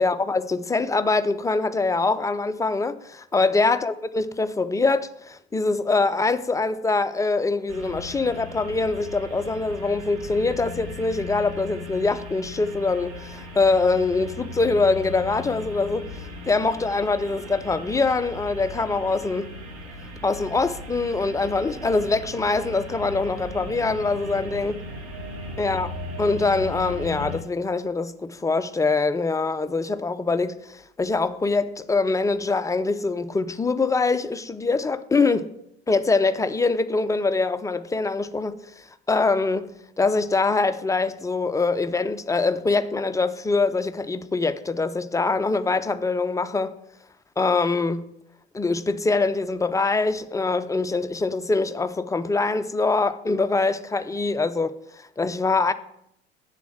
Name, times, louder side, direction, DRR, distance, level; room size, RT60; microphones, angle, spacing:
voice 1, 0.0-16.1 16.5-19.6 20.2-24.8 25.6-25.9 26.2-35.5 35.9-46.8 47.4-48.1 48.5-55.7, left 3 dB, 10° left, 0.5 m, -24 dB
sound 1, 7.7-27.4, left 2 dB, 40° right, 2.7 m, -38 dB
7.3 x 7.1 x 7.6 m
figure-of-eight pair, 75°, 32 cm